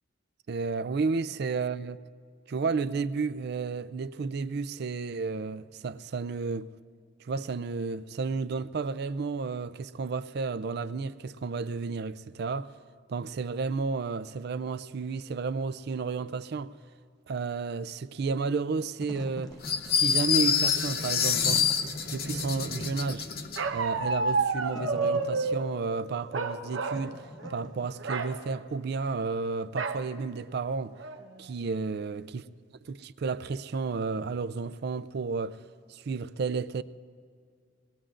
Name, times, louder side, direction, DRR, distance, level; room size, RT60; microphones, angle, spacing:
voice 1, 0.5-2.0 2.5-6.7 7.2-12.7 13.1-16.7 17.3-19.6 19.9-21.7 22.1-23.3 23.7-31.0 31.4-32.4 32.8-35.6 35.9-36.8, right 4 dB, 55° right, 0.4 m, -32 dB
Wind / Fire, 18.8-28.3, left 1 dB, 20° left, 0.9 m, -46 dB
sound 1, 19.6-23.6, left 7 dB, 50° left, 0.8 m, -27 dB
Bark, 23.6-25.7 26.3-27.1 27.4-27.6 28.0-28.3 29.8-30.0 30.6-30.7 31.0-31.4, right 3 dB, 90° right, 1.0 m, -29 dB
23.5 x 19.5 x 2.5 m
head